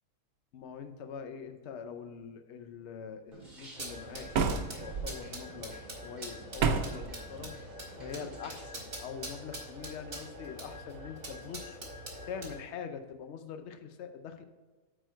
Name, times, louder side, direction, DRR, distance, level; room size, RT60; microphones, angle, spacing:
voice 1, 0.5-4.3 4.8-7.6 8.0-11.8 12.2-14.4, left 7 dB, 60° left, 7 dB, 0.9 m, -44 dB
sound 1, 3.3-8.8, right 3 dB, 30° right, 2.5 m, -53 dB
sound 2, 3.7-12.6, right 1 dB, 50° right, 2.0 m, -44 dB
sound 3, 4.3-5.1 6.6-7.1, right 5 dB, 85° right, 1.2 m, -29 dB
8.8 x 4.6 x 4.6 m, 1.3 s
omnidirectional pair, 1.5 m